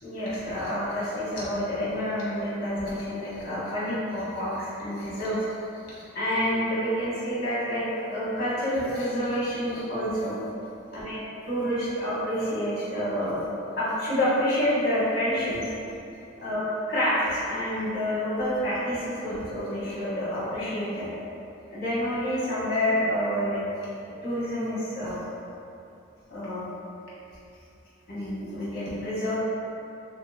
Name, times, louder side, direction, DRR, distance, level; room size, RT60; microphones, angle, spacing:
voice 1, 0.0-5.5 5.9-7.8 8.1-10.4 10.9-11.2 11.5-13.4 13.7-15.6 16.4-21.1 21.7-23.6 24.0-25.2 26.3-26.6 28.1-29.3, equal, 50° left, -10 dB, 1.0 m, -28 dB
2.9 x 2.7 x 2.4 m, 2.8 s
head